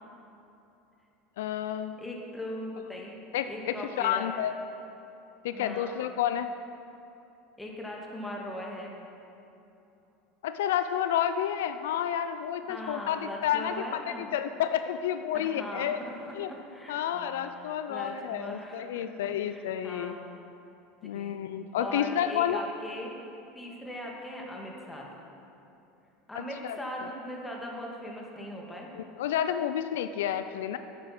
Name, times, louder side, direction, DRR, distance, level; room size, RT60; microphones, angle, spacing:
voice 1, 1.4-2.0 3.3-4.5 5.4-6.5 10.4-16.0 16.3-16.5 16.9-20.2 21.0-22.6 26.4-26.8 29.0-30.8, left 10 dB, 85° left, 10 dB, 0.4 m, -30 dB
voice 2, 2.0-3.2 3.5-4.3 5.5-6.0 7.6-9.0 12.7-14.3 15.3-16.1 16.5-19.1 19.4-20.4 21.0-21.4 21.8-23.1 23.5-25.1 26.3-28.9, left 1 dB, 10° left, -2 dB, 2.1 m, -40 dB
9.5 x 8.6 x 6.0 m, 2.9 s
supercardioid pair, 105°, 0 cm